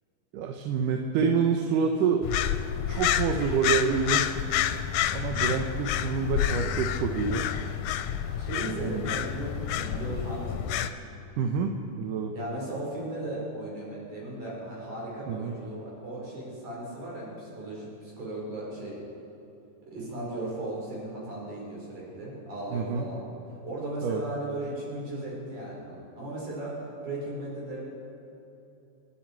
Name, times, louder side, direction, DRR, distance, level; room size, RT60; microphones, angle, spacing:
voice 1, 0.3-2.2 2.9-4.3 5.1-7.4 8.8-9.0 11.4-11.7 12.0-12.3 15.3-15.5 22.7-23.1 24.0-24.2, right 6 dB, 90° right, 4 dB, 2.4 m, -27 dB
sound 1, 2.2-10.9, left 10 dB, 75° left, 1.8 m, -29 dB
voice 2, 8.4-10.8 12.3-19.0 19.9-23.2 23.5-27.9, right 1 dB, 75° right, -5 dB, 6.1 m, -36 dB
28.5 x 10.0 x 4.5 m, 2.9 s
omnidirectional pair, 3.6 m